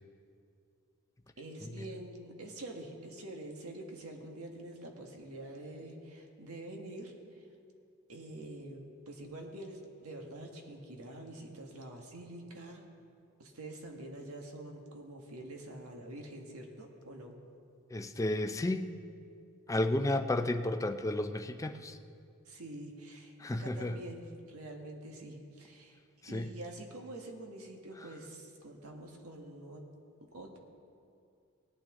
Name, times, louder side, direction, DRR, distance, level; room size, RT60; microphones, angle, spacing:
voice 1, 1.4-7.4 8.1-12.9 13.4-17.4 22.4-26.0 26.3-29.8 30.3-30.6, right 1 dB, 80° right, 2 dB, 1.6 m, -46 dB
voice 2, 17.9-18.9 19.7-22.0 23.4-24.0 26.3-26.5, left 1 dB, 15° left, 7 dB, 0.5 m, -32 dB
19.0 x 9.0 x 3.7 m, 2.4 s
head